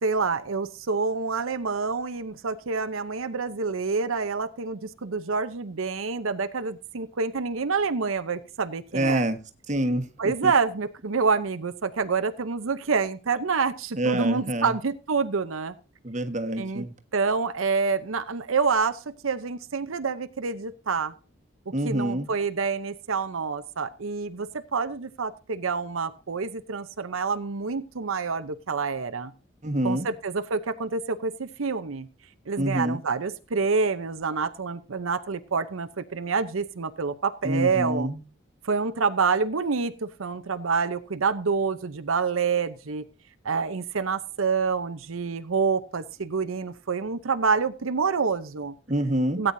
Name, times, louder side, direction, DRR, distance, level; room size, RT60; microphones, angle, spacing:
voice 1, 0.0-9.2 10.2-15.7 16.6-16.8 17.1-21.1 21.8-29.3 29.8-32.1 32.5-38.1 38.6-43.0 43.4-48.7 49.4-49.5, right 5 dB, 85° right, 9 dB, 0.8 m, -27 dB
voice 2, 8.9-9.4 9.7-10.1 10.4-10.5 14.0-14.7 16.0-16.9 21.7-22.3 29.6-30.1 32.6-33.0 37.4-38.2 48.9-49.4, right 1 dB, 35° right, 6 dB, 1.4 m, -26 dB
17.0 x 9.1 x 2.7 m, 0.34 s
head